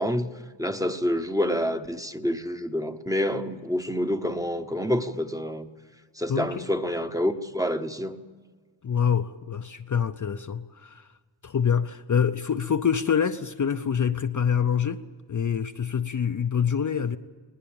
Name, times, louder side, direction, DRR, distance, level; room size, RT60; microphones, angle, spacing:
voice 1, 0.0-5.7 6.2-8.2, equal, 5° right, 0.9 m, -28 dB
voice 2, 6.3-6.7 8.8-11.1 11.4-15.0 15.3-17.2, left 7 dB, 40° left, 0.6 m, -26 dB
21.0 x 19.5 x 8.7 m
wide cardioid pair, 160°, 46 cm